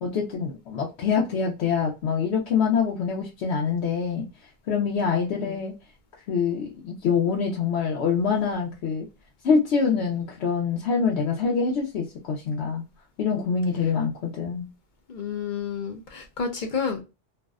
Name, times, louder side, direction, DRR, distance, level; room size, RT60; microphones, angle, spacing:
voice 1, 0.0-4.3 4.7-5.7 6.3-9.1 9.4-12.8 13.2-14.7, left 6 dB, 80° left, 0.9 m, -25 dB
voice 2, 15.1-17.0, left 6 dB, 55° left, 0.6 m, -30 dB
2.6 x 2.1 x 2.3 m
omnidirectional pair, 1.1 m